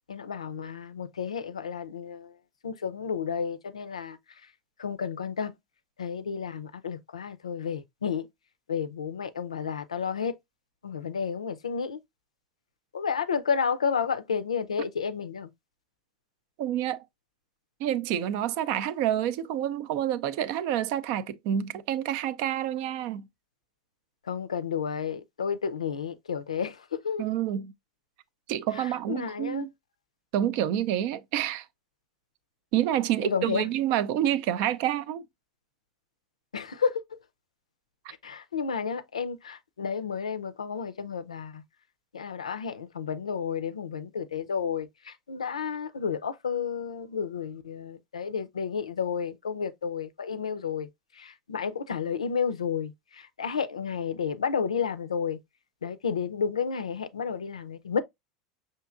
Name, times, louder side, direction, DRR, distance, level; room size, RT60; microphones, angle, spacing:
voice 1, 0.1-2.4 2.6-4.5 4.8-5.6 6.0-8.3 8.7-10.4 10.8-12.0 12.9-15.5 24.2-27.2 28.7-29.7 33.2-33.7 36.5-37.0 38.2-41.6 42.1-55.4 55.8-58.0, left 6 dB, 85° left, 0.4 m, -31 dB
voice 2, 16.6-17.1 17.8-23.3 27.2-27.7 28.5-29.7 30.3-31.7 32.7-35.2, right 11 dB, 55° right, 0.4 m, -28 dB
5.7 x 2.7 x 2.3 m
hypercardioid pair, 85°, 3 cm